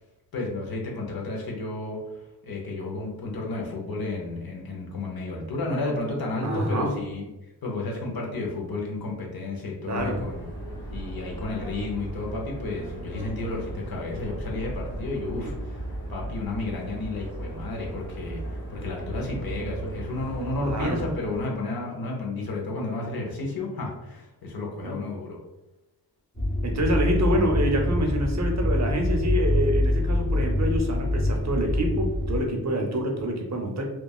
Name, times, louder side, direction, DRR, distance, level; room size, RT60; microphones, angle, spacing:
voice 1, 0.3-10.4 10.9-15.8 16.1-25.4, left 2 dB, 65° left, -1 dB, 0.8 m, -32 dB
voice 2, 6.4-6.9 9.9-10.2 20.6-21.0 24.5-25.0 26.6-33.8, equal, 45° right, 2 dB, 0.6 m, -27 dB
sound 1, 10.0-21.4, right 2 dB, 30° left, 1.2 m, -36 dB
sound 2, 26.4-32.4, left 1 dB, 10° left, 0.7 m, -25 dB
3.0 x 2.3 x 2.3 m, 1.0 s
wide cardioid pair, 105°, 38 cm